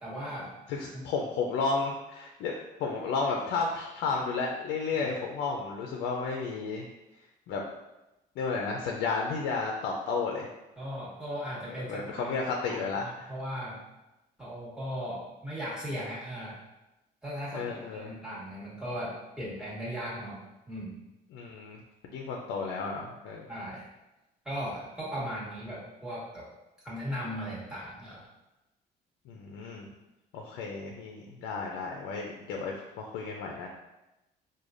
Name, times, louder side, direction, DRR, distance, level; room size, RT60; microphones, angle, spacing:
voice 1, 0.0-0.5 0.9-1.1 10.8-12.4 12.7-13.8 14.4-16.6 17.2-20.4 20.7-20.9 23.5-23.8 24.4-26.5 26.8-28.3, equal, 5° right, -8 dB, 1.4 m, -37 dB
voice 2, 0.7-6.9 7.5-7.6 8.4-10.5 11.9-13.3 17.5-18.1 21.3-23.5 29.3-29.9 30.3-33.7, left 4 dB, 85° left, 0 dB, 0.4 m, -32 dB
4.7 x 2.2 x 2.5 m, 0.99 s
cardioid pair, 110°, 17 cm